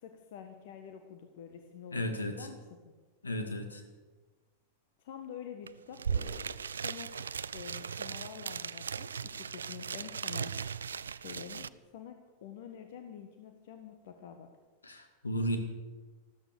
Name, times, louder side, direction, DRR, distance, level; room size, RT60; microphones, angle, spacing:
voice 1, 0.0-2.6 2.8-2.9 5.0-10.5 11.2-14.5, left 8 dB, 55° left, 6 dB, 1.3 m, -48 dB
voice 2, 1.9-2.5 3.2-3.8 14.8-15.6, equal, 75° left, 6 dB, 2.1 m, -34 dB
sound 1, 5.7-5.8 5.9-11.7, right 6 dB, 70° right, 0.4 m, -37 dB
13.5 x 13.0 x 7.0 m, 1.3 s
figure-of-eight pair, 90°, 0 cm